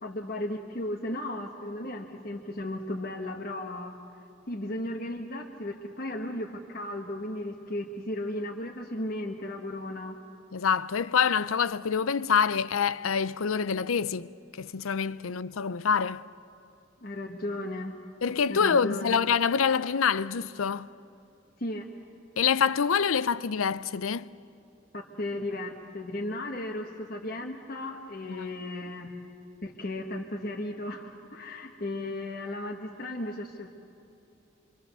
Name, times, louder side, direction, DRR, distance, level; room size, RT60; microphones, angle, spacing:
voice 1, 0.0-3.9 4.5-10.2 17.0-17.9 18.5-19.2 21.6-21.9 24.9-29.1 29.6-33.7, left 1 dB, 45° left, 1.3 m, -35 dB
voice 2, 10.5-14.3 14.6-16.2 18.2-20.9 22.4-24.3 28.2-28.5, left 6 dB, 90° left, 0.6 m, -26 dB
26.0 x 24.5 x 6.9 m
head